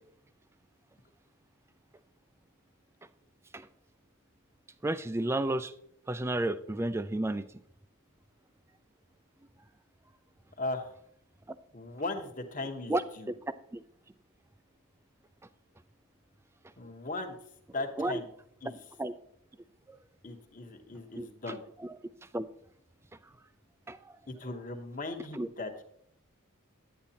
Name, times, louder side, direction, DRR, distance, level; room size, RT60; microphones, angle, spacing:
voice 1, 4.8-5.7 6.1-7.5 11.5-11.6 12.9-13.8 18.0-18.2 19.0-19.1 19.9-20.0 21.2-22.0 22.3-22.5 23.9-24.1 25.3-25.5, right 1 dB, 10° right, 13 dB, 0.3 m, -32 dB
voice 2, 10.6-10.9 11.7-13.3 16.8-17.3 17.7-18.3 18.6-18.8 20.2-21.6 24.3-25.8, left 2 dB, 35° left, 5 dB, 1.1 m, -38 dB
10.5 x 9.5 x 2.8 m, 0.70 s
head